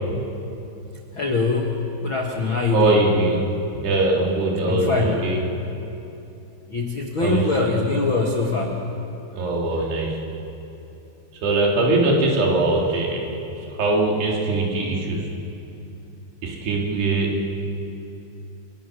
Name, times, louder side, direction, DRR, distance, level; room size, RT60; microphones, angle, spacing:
voice 1, 1.1-3.0 4.7-5.2 6.7-8.8, left 4 dB, 65° left, 0 dB, 1.2 m, -23 dB
voice 2, 2.7-5.4 7.2-7.4 9.4-10.2 11.4-13.2 13.8-15.3 16.4-17.4, right 2 dB, 60° right, -2 dB, 5.4 m, -21 dB
29.5 x 28.0 x 6.9 m, 2.9 s
omnidirectional pair, 5.5 m